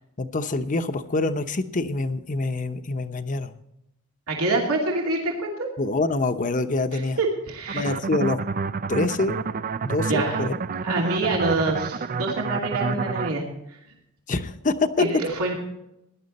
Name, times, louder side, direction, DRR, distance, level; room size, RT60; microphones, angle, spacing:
voice 1, 0.2-3.5 5.8-7.2 7.7-8.4 8.9-9.4 9.8-10.5 14.3-15.0, left 2 dB, 35° left, 10 dB, 0.9 m, -25 dB
voice 2, 4.3-5.7 6.9-7.9 10.1-10.4 10.8-13.8 15.0-15.5, right 2 dB, 85° right, 0 dB, 2.7 m, -26 dB
sound 1, 7.7-13.3, right 4 dB, 40° right, 0.5 m, -29 dB
17.5 x 11.0 x 4.2 m, 0.84 s
head